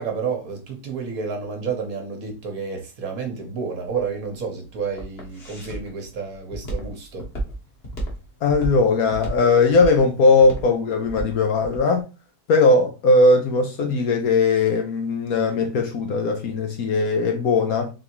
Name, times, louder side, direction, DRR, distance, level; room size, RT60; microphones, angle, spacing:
voice 1, 0.0-7.3, right 5 dB, 60° right, 1.4 m, -30 dB
Walk footsteps, 4.5-11.9, right 1 dB, 40° left, 1.3 m, -33 dB
voice 2, 8.4-12.1 12.5-17.9, left 3 dB, 65° left, 1.1 m, -19 dB
3.9 x 3.4 x 2.8 m
omnidirectional pair, 1.8 m